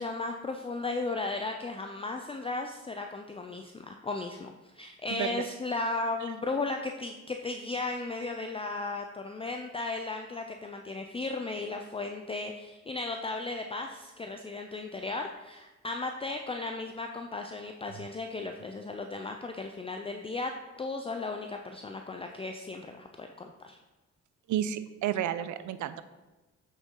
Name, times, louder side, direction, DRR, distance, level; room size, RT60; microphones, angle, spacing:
voice 1, 0.0-23.8, left 3 dB, 20° left, 4 dB, 0.5 m, -35 dB
voice 2, 5.1-5.4 6.2-6.3 24.5-26.0, right 11 dB, 75° right, 13 dB, 0.6 m, -31 dB
7.8 x 6.4 x 3.8 m, 1.1 s
cardioid pair, 90°, 30 cm